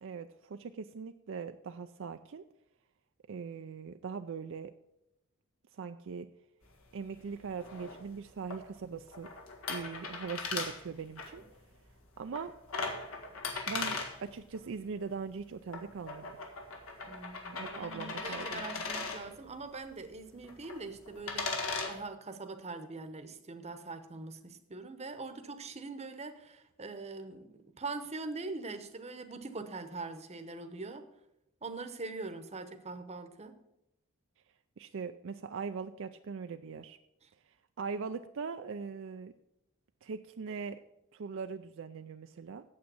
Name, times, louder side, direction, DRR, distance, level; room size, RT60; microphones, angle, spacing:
voice 1, 0.0-2.4 3.3-4.7 5.7-6.3 6.9-9.3 9.7-11.4 12.2-12.5 13.7-16.3 17.5-18.7 34.8-37.0 37.8-39.3 40.0-40.8 41.1-42.6, right 5 dB, 65° right, 8 dB, 0.4 m, -41 dB
sound 1, 6.6-21.9, left 4 dB, 80° left, 1.6 m, -40 dB
voice 2, 17.1-31.1 31.6-33.6, right 3 dB, 30° right, 8 dB, 0.9 m, -43 dB
8.7 x 7.5 x 7.0 m, 0.87 s
head